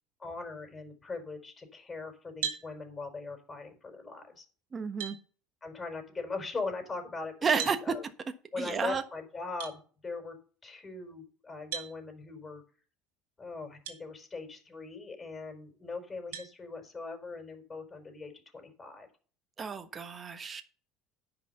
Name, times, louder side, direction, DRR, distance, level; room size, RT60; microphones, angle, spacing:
voice 1, 0.2-4.4 5.6-8.0 8.5-10.4 10.6-12.6 13.4-19.1, left 3 dB, 25° left, 5 dB, 5.1 m, -40 dB
sound 1, 2.4-2.7 4.3-4.4 5.0-5.2 7.6-7.8 9.6-9.8 11.7-11.9 13.8-14.0 14.6-14.7 16.3-16.5, right 9 dB, 80° right, 1.8 m, -36 dB
voice 2, 4.7-5.2 7.4-7.8 8.6-9.0 19.6-20.6, right 6 dB, 30° right, 9 dB, 1.3 m, -31 dB
9.9 x 6.0 x 6.9 m, 0.39 s
hypercardioid pair, 75°, 0 cm